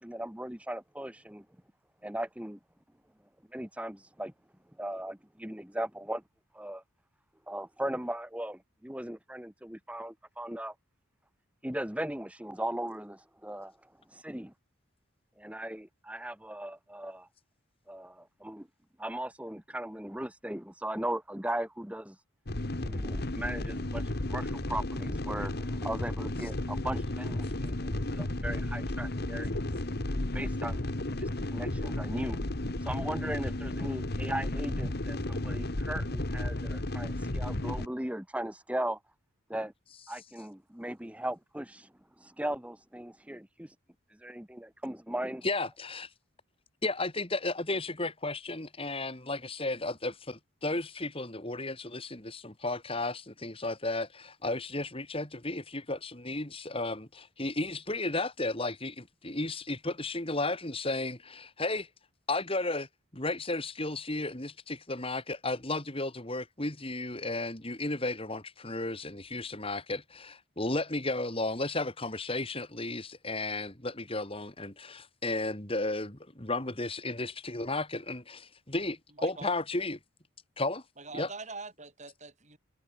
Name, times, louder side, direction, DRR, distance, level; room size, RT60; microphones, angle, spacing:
voice 1, 0.0-1.4 2.0-2.6 3.5-4.3 4.8-6.2 6.5-6.8 7.5-10.7 11.6-14.5 15.4-17.3 17.9-18.7 19.0-22.2 22.8-29.6 30.3-30.9 31.2-32.4 32.8-39.0 39.5-39.7 40.1-43.7 44.1-45.4, right 1 dB, 5° right, 1.1 m, -38 dB
sound 1, 22.5-37.9, left 1 dB, 50° left, 1.5 m, -33 dB
voice 2, 45.4-46.1 46.8-61.9 62.3-62.9 63.1-80.0 80.6-80.8 81.1-81.3, left 2 dB, 25° left, 2.8 m, -34 dB
voice 3, 79.2-79.5 81.0-82.6, right 3 dB, 35° right, 4.0 m, -43 dB
head